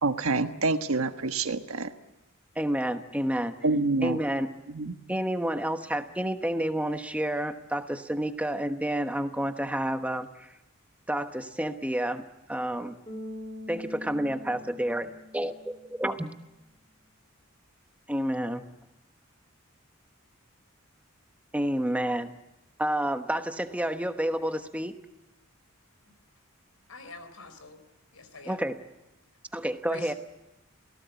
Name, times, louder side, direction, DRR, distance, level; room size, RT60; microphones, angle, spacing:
voice 1, 0.0-1.9 3.6-4.2 4.7-4.9, right 3 dB, 80° right, 8 dB, 1.4 m, -27 dB
voice 2, 2.5-3.5 4.0-4.5 5.1-10.5 11.1-12.9 13.7-16.3 18.1-18.6 21.5-22.3 22.8-24.9 28.5-28.8 29.5-30.1, right 1 dB, 5° right, 7 dB, 1.1 m, -29 dB
Bass guitar, 13.1-16.2, left 1 dB, 25° left, 5.6 m, -43 dB
voice 3, 26.9-27.8 28.1-28.6 29.9-30.1, left 3 dB, 90° left, 10 dB, 4.0 m, -44 dB
28.5 x 18.0 x 8.3 m, 0.98 s
head